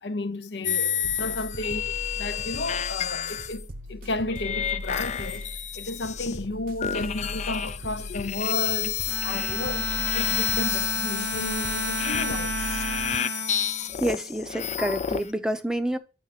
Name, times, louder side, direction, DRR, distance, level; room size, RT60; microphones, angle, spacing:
voice 1, 0.0-5.5 5.7-12.6 12.9-13.3, left 2 dB, 75° left, 0.7 m, -33 dB
sound 1, 0.6-3.6 4.3-6.5 6.8-15.3, left 10 dB, 40° left, 0.4 m, -30 dB
sound 2, 1.0-13.2, equal, 55° right, 0.8 m, -39 dB
Bowed string instrument, 9.1-14.6, right 4 dB, 85° right, 0.7 m, -34 dB
voice 2, 14.0-16.0, right 1 dB, 5° right, 0.7 m, -28 dB
8.7 x 3.3 x 5.8 m
head